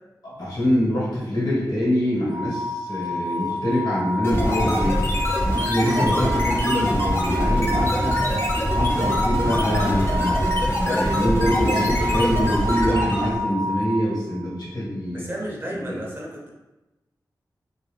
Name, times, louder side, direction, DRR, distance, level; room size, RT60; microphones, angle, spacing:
voice 1, 0.2-5.0 5.4-8.3 8.7-10.5 10.8-15.3 15.7-16.0, equal, 75° left, -6 dB, 1.2 m, -24 dB
sound 1, 2.3-14.5, left 1 dB, 80° right, 0.4 m, -28 dB
sound 2, 4.2-13.4, equal, 35° left, 0.5 m, -24 dB
voice 2, 10.8-11.2 15.1-16.5, right 1 dB, 30° right, -3 dB, 0.6 m, -32 dB
2.6 x 2.0 x 3.1 m, 1.0 s
wide cardioid pair, 85°, 7 cm